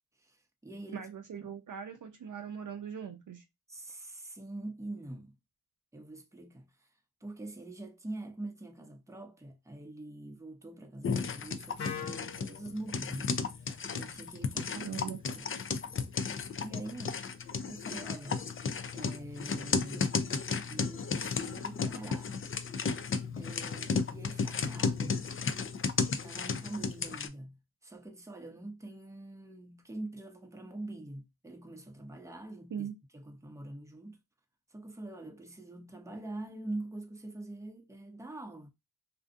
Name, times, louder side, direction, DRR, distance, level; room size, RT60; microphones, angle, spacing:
voice 1, 0.2-1.1 3.7-5.3 5.9-6.7 7.2-13.4 13.9-14.9 15.3-15.5 16.6-17.2 17.6-18.4 18.9-20.1 20.7-22.3 23.4-25.3 26.2-32.9 33.1-34.2 34.7-38.7, right 2 dB, 10° right, 0.6 m, -44 dB
voice 2, 0.9-3.4 14.7-15.2 32.7-32.9, right 7 dB, 55° right, 0.5 m, -40 dB
sound 1, 11.0-27.3, left 5 dB, 35° left, 0.4 m, -34 dB
Wind instrument woodwind instrument, 11.8-15.7, left 6 dB, 85° left, 0.6 m, -46 dB
2.6 x 2.4 x 2.4 m
cardioid pair, 50°, 39 cm